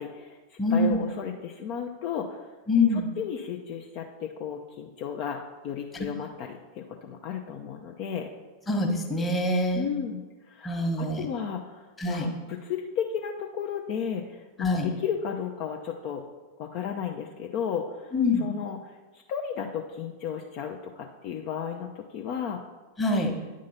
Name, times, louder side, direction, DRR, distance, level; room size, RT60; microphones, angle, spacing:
voice 1, 0.0-2.5 2.9-8.3 9.7-16.2 16.6-18.1 18.4-22.6, left 8 dB, 45° left, 2 dB, 0.6 m, -34 dB
voice 2, 0.6-1.0 2.7-3.1 5.9-6.1 8.7-9.9 10.6-11.3 12.0-12.3 14.6-14.9 18.1-18.5 23.0-23.3, left 2 dB, 15° left, 1 dB, 1.3 m, -25 dB
9.5 x 3.7 x 5.5 m, 1.2 s
figure-of-eight pair, 90°, 0 cm